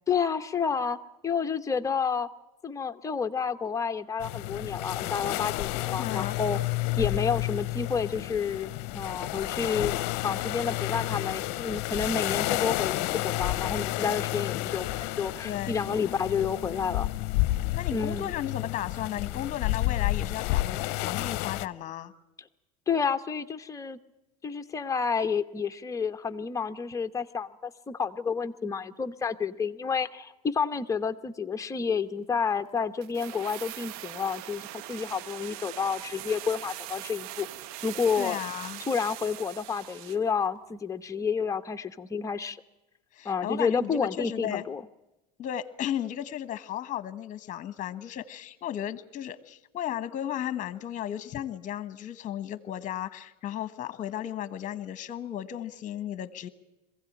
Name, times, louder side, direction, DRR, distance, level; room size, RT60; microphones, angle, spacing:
voice 1, 0.1-1.0 1.2-2.3 2.6-6.6 7.0-17.1 17.9-18.3 22.9-24.0 24.4-37.5 37.8-38.4 38.9-42.6 43.2-44.8, left 6 dB, 15° left, 7 dB, 1.0 m, -30 dB
sound 1, 4.2-21.7, left 18 dB, 60° left, 0.7 m, -30 dB
voice 2, 6.0-6.4 15.4-16.1 17.6-22.1 38.2-38.8 43.1-44.6 45.4-56.5, left 11 dB, 40° left, 14 dB, 1.3 m, -35 dB
sound 2, 33.0-40.3 40.6-40.7, right 14 dB, 75° right, 0.7 m, -41 dB
22.0 x 16.0 x 8.8 m, 0.99 s
supercardioid pair, 100°, 20 cm